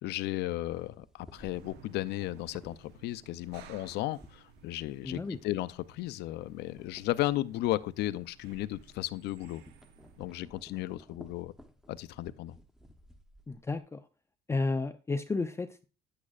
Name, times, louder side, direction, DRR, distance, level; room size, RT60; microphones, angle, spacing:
voice 1, 0.0-9.6 10.2-11.5 11.9-12.6, left 16 dB, 80° left, 0.5 m, -34 dB
sound 1, 0.6-6.1 6.4-13.8, equal, 5° right, 0.9 m, -57 dB
sound 2, 1.3-10.5, right 7 dB, 80° right, 0.9 m, -58 dB
voice 2, 5.0-5.4 13.5-14.1 14.5-15.8, left 3 dB, 15° left, 0.4 m, -32 dB
9.7 x 8.5 x 2.4 m
cardioid pair, 110°, 17 cm